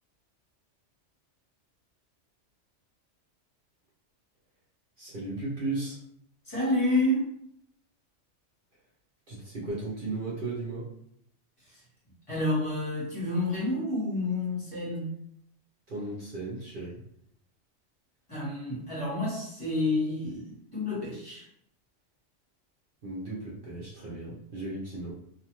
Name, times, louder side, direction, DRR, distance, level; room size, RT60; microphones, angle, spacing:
voice 1, 5.0-6.0 9.3-10.9 15.9-17.0 23.0-25.1, right 2 dB, 50° right, -6 dB, 0.8 m, -35 dB
voice 2, 6.4-7.3 11.6-11.8 12.3-15.1 18.3-21.5, left 1 dB, 25° left, -8 dB, 1.2 m, -29 dB
2.5 x 2.3 x 2.9 m, 0.73 s
omnidirectional pair, 1.3 m